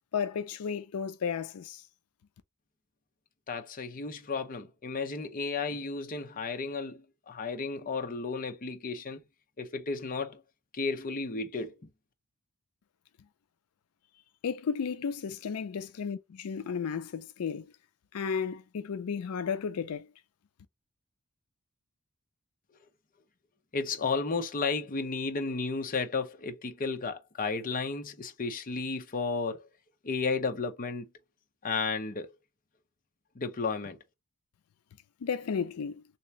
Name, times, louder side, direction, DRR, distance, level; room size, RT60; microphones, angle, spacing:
voice 1, 0.1-1.8 14.4-17.7 18.1-20.1 35.2-36.0, left 6 dB, 85° left, 0.4 m, -33 dB
voice 2, 3.5-9.2 9.6-10.4 10.7-11.9 23.7-29.7 30.0-31.1 31.6-32.3 33.4-34.0, left 4 dB, 40° left, 0.7 m, -33 dB
3.3 x 2.9 x 2.9 m
head